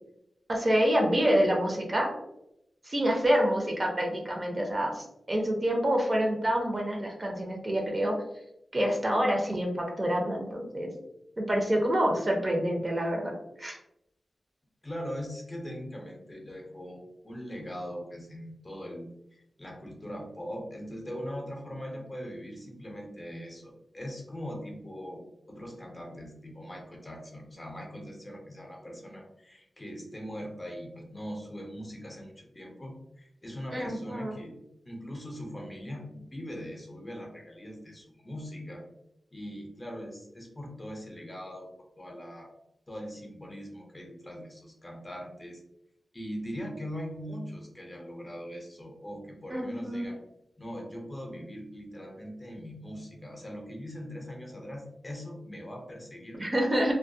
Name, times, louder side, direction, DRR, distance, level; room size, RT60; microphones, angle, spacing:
voice 1, 0.5-2.1 2.8-8.2 8.7-10.9 11.4-13.3 13.6-13.8 33.7-34.3 49.5-50.1 56.4-56.9, equal, 35° right, 0 dB, 0.6 m, -27 dB
voice 2, 14.8-34.5 34.8-38.8 39.3-41.7 42.0-42.5 42.9-45.6 46.1-50.2 50.6-56.9, equal, 25° left, 0 dB, 0.6 m, -41 dB
2.2 x 2.1 x 2.6 m, 0.81 s
cardioid pair, 65°, 0 cm